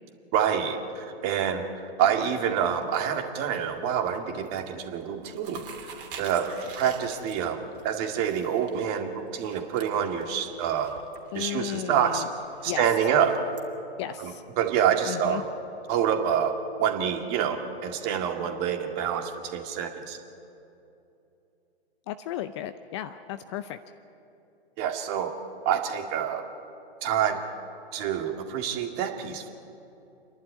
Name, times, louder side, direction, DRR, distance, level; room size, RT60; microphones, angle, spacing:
voice 1, 0.3-5.9 6.2-7.6 7.8-10.9 11.3-12.2 12.6-13.4 14.2-15.5 15.9-20.2 24.8-25.3 25.7-26.4 27.0-27.4 27.9-29.5, right 8 dB, 30° right, 5 dB, 2.0 m, -27 dB
sound 1, 2.2-3.3 3.6-4.0 4.3-4.7 5.0-13.6, right 5 dB, 55° right, 3.1 m, -47 dB
voice 2, 11.3-12.3 12.6-13.1 14.0-14.4 15.1-15.4 22.1-23.8, left 12 dB, 30° left, 11 dB, 0.6 m, -34 dB
28.5 x 11.5 x 9.7 m, 2.8 s
figure-of-eight pair, 125°, 31 cm